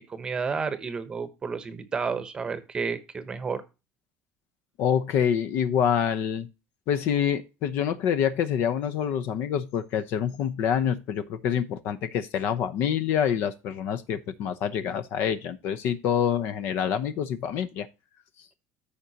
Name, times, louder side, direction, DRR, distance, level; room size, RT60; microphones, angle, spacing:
voice 1, 0.1-3.6, right 5 dB, 15° right, 1.0 m, -31 dB
voice 2, 4.8-6.5 6.9-17.9, left 8 dB, 50° left, 0.8 m, -26 dB
14.0 x 5.2 x 2.8 m
cardioid pair, 160°, 5 cm